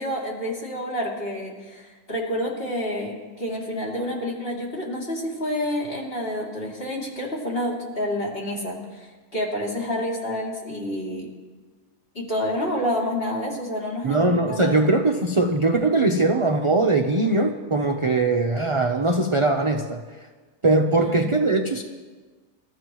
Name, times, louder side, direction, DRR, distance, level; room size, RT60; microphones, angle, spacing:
voice 1, 0.0-11.3 12.1-14.8 21.0-21.4, left 1 dB, 40° left, -4 dB, 3.2 m, -29 dB
voice 2, 14.0-20.0 20.6-21.8, right 2 dB, 30° right, 3 dB, 0.6 m, -21 dB
26.5 x 13.5 x 3.1 m, 1.4 s
omnidirectional pair, 1.6 m